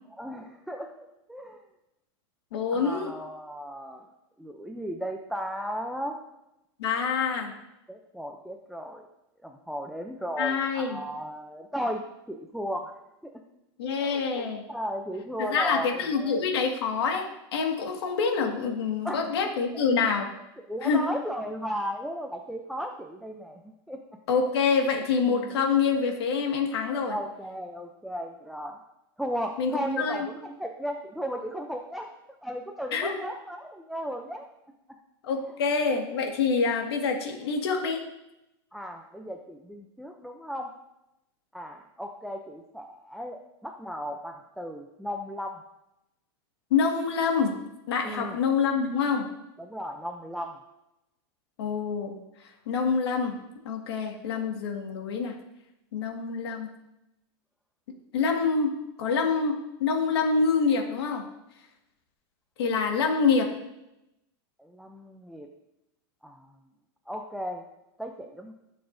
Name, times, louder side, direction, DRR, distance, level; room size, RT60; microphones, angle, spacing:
voice 1, 0.1-1.6 2.7-4.1 4.4-6.2 7.9-9.0 9.4-12.0 12.3-12.9 13.2-13.4 14.0-16.5 19.0-19.3 19.7-19.8 20.7-24.0 25.2-25.5 27.1-28.8 29.2-32.1 32.4-34.5 38.7-40.7 41.5-45.6 48.0-48.4 49.6-50.5 64.6-65.5 66.2-66.5 67.1-67.7 68.0-68.5, equal, ahead, 3 dB, 0.5 m, -35 dB
voice 2, 2.5-3.1 6.8-7.5 10.4-11.0 13.8-14.6 15.4-20.3 20.8-21.0 24.3-27.2 29.6-30.3 32.9-33.2 35.2-38.0 46.7-47.6 47.9-49.3 51.6-52.2 52.7-53.4 53.6-55.3 55.9-56.7 58.1-58.7 59.0-59.5 59.8-61.2 62.6-63.5, left 5 dB, 90° left, 3 dB, 1.8 m, -26 dB
15.0 x 6.9 x 2.7 m, 0.90 s
supercardioid pair, 155°, 13 cm